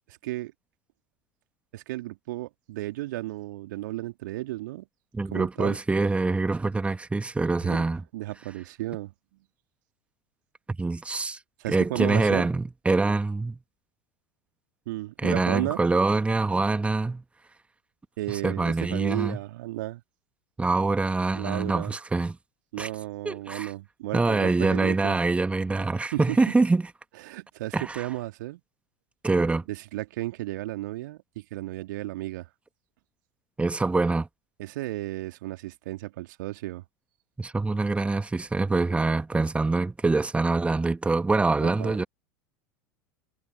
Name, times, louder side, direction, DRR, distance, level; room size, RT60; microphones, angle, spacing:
voice 1, 0.1-0.5 1.7-4.9 5.3-5.8 7.6-7.8 8.1-9.1 11.6-12.5 14.9-15.8 18.2-20.0 21.3-21.9 22.7-25.2 26.1-26.6 27.2-28.6 29.7-32.5 34.6-36.8 41.6-42.0, right 17 dB, 60° right, 2.8 m, -33 dB
voice 2, 5.1-8.0 10.8-11.4 11.7-13.6 15.2-17.2 18.3-19.4 20.6-22.3 22.8-22.9 23.2-23.7 24.1-26.8 27.7-28.0 29.2-29.6 33.6-34.3 37.4-42.0, right 3 dB, 10° right, 1.7 m, -25 dB
figure-of-eight pair, 80°, 12 cm